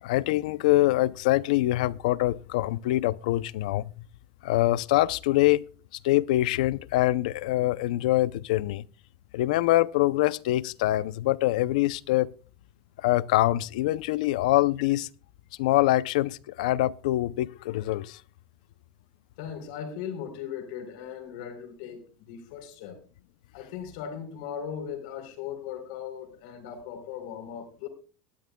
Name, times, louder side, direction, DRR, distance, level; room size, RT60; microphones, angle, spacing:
voice 1, 0.0-3.9 4.4-5.6 6.0-8.8 9.3-12.3 13.0-15.1 15.6-18.2, left 16 dB, 80° left, 0.5 m, -24 dB
voice 2, 19.4-23.0 23.5-27.9, left 8 dB, 65° left, 3.7 m, -38 dB
20.0 x 13.0 x 2.2 m
cardioid pair, 180°, 4 cm